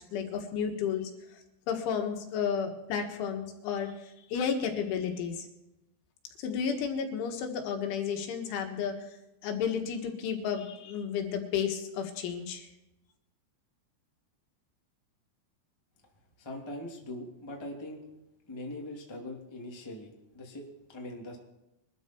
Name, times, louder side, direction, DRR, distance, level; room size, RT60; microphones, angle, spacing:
voice 1, 0.1-1.1 1.7-5.5 6.4-8.9 9.4-12.7, left 7 dB, 75° left, 4 dB, 3.9 m, -32 dB
voice 2, 16.4-18.0 18.5-21.4, left 1 dB, 15° left, -1 dB, 1.0 m, -42 dB
23.0 x 13.0 x 4.6 m, 0.92 s
omnidirectional pair, 5.7 m